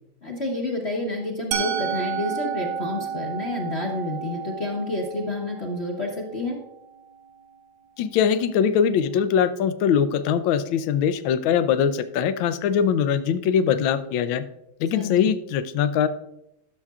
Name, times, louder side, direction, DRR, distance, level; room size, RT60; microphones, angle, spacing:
voice 1, 0.2-6.6 14.9-15.3, left 2 dB, 40° left, -2 dB, 1.1 m, -29 dB
Musical instrument, 1.5-7.4, right 8 dB, 75° right, 1.1 m, -32 dB
voice 2, 8.0-14.4 14.8-16.1, left 8 dB, 80° left, 12 dB, 1.3 m, -22 dB
12.5 x 7.0 x 2.4 m, 0.84 s
omnidirectional pair, 2.2 m